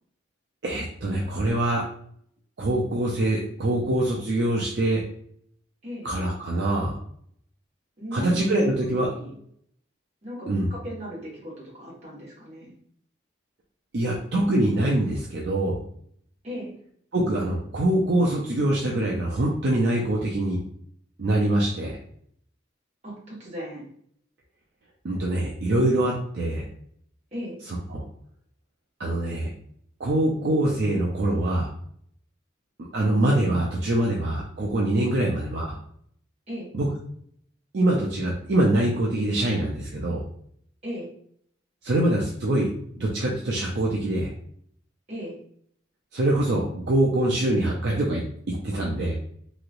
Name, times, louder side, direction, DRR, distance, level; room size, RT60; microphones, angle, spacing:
voice 1, 0.6-1.8 2.6-5.0 6.0-6.9 8.1-9.1 10.5-10.7 13.9-15.8 17.1-20.6 21.2-22.0 25.0-26.6 27.7-28.0 29.0-29.5 30.0-31.7 32.8-35.8 36.7-36.9 37.7-40.2 41.8-42.7 43.0-44.3 46.1-49.2, right 1 dB, 60° right, -2 dB, 0.5 m, -24 dB
voice 2, 8.0-9.4 10.2-11.5 11.8-12.7 16.4-16.7 23.0-23.8 27.3-27.6 35.2-35.3 36.5-36.7 40.8-41.1 45.1-45.4, equal, 35° right, -6 dB, 1.4 m, -37 dB
3.1 x 2.8 x 2.5 m, 0.64 s
head